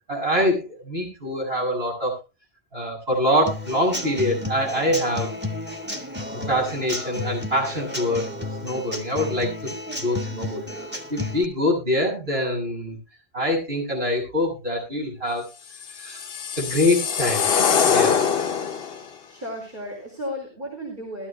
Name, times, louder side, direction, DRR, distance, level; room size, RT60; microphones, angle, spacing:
voice 1, 0.1-2.2 2.7-5.3 6.5-8.2 8.6-10.7 11.1-13.0 13.3-15.5 15.9-16.2 16.6-17.5 17.9-18.1, left 1 dB, 65° right, -2 dB, 8.0 m, -24 dB
Human voice / Acoustic guitar / Drum, 3.5-11.4, left 2 dB, 10° right, 1.6 m, -32 dB
sound 1, 15.8-19.0, left 7 dB, 65° left, 1.1 m, -23 dB
voice 2, 19.3-21.3, equal, 50° right, 0 dB, 4.9 m, -34 dB
21.0 x 13.5 x 2.2 m, 0.28 s
omnidirectional pair, 1.1 m